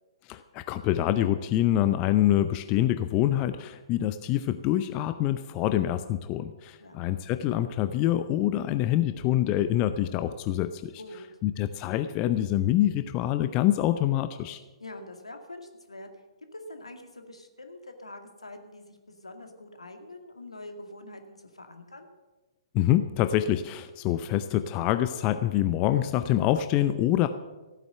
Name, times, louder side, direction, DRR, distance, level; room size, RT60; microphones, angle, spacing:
voice 1, 0.3-10.9 11.4-14.6 22.7-27.3, left 13 dB, 25° left, 11 dB, 0.6 m, -26 dB
voice 2, 11.0-11.3 14.8-16.1 16.5-22.1, left 2 dB, 80° left, 5 dB, 2.1 m, -45 dB
15.0 x 9.2 x 6.7 m, 1.2 s
figure-of-eight pair, 125°, 3 cm